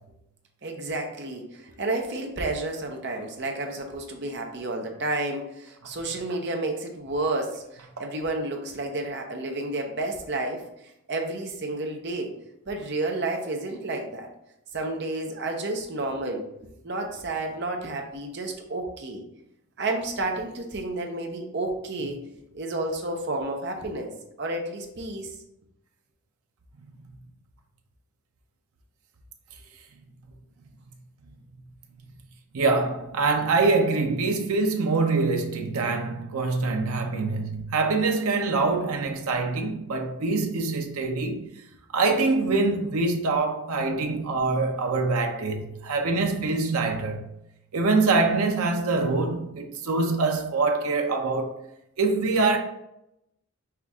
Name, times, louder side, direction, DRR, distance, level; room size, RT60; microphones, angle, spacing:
voice 1, 0.6-10.6 11.1-12.3 12.7-14.3 14.7-19.2 19.8-22.2 22.5-24.1 24.4-25.4, right 2 dB, 50° right, 0.7 m, -31 dB
voice 2, 32.5-41.5 41.9-47.3 47.7-51.6 52.0-52.6, right 3 dB, 85° right, 0.6 m, -24 dB
5.7 x 2.5 x 3.4 m
head